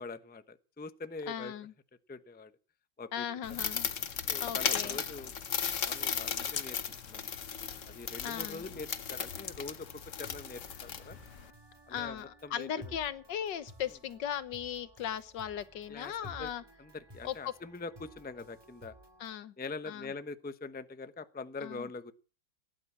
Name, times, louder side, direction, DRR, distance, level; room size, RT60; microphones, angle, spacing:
voice 1, 0.0-1.5 2.1-2.5 3.0-3.3 4.3-5.3 5.8-6.8 7.0-7.4 7.9-9.9 10.2-11.2 11.9-12.9 15.9-16.5 16.8-19.0 19.6-22.1, left 3 dB, 10° left, 0.6 m, -43 dB
voice 2, 1.3-1.7 3.1-3.9 4.4-5.0 8.2-8.6 11.9-16.6 17.2-17.5 19.2-19.5 19.8-20.1 21.6-21.9, left 9 dB, 80° left, 1.7 m, -38 dB
sound 1, 3.4-11.5, left 7 dB, 50° left, 1.3 m, -36 dB
sound 2, 9.8-19.4, equal, 15° right, 1.9 m, -55 dB
17.0 x 10.5 x 7.4 m
omnidirectional pair, 1.9 m